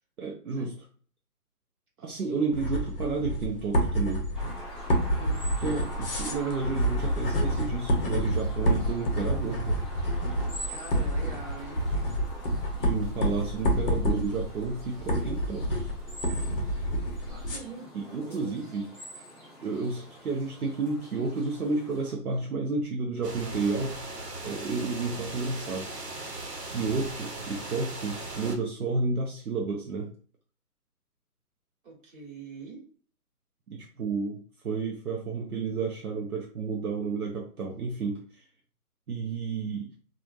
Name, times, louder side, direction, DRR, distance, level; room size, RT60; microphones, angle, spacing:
voice 1, 0.2-0.7 2.0-4.3 5.6-9.8 12.8-15.8 17.9-18.9 19.6-24.0 24.4-25.9 26.6-30.1 33.7-38.4 39.1-39.9, right 4 dB, 65° right, 0 dB, 0.8 m, -31 dB
sound 1, 2.5-17.6, equal, 35° left, 0.8 m, -28 dB
sound 2, 4.3-22.1, equal, ahead, 0.5 m, -45 dB
voice 2, 10.7-11.8 17.2-17.9 18.2-18.7 31.8-32.8, right 3 dB, 35° right, -3 dB, 1.5 m, -43 dB
sound 3, 23.2-28.6, right 2 dB, 90° right, 1.1 m, -38 dB
3.0 x 2.5 x 2.5 m, 0.43 s
figure-of-eight pair, 145°, 47 cm